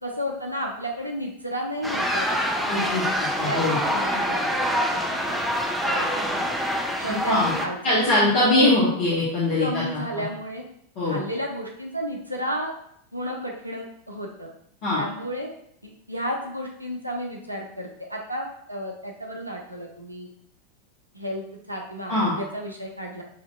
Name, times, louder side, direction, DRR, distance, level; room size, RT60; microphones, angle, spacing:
voice 1, 0.0-2.7 3.4-5.4 5.8-6.5 7.0-8.1 8.4-8.7 9.6-10.6 11.0-12.7 13.1-14.5 14.9-15.5 15.8-20.3 21.1-23.2, equal, 85° right, 0 dB, 0.4 m, -32 dB
sound 1, 1.8-7.7, equal, ahead, 0.4 m, -26 dB
voice 2, 2.7-3.8 7.3-7.5 7.8-10.0 11.0-11.2 14.8-15.0 22.1-22.3, left 2 dB, 45° left, -7 dB, 1.1 m, -22 dB
5.6 x 2.7 x 2.2 m, 0.71 s
figure-of-eight pair, 90°, 0 cm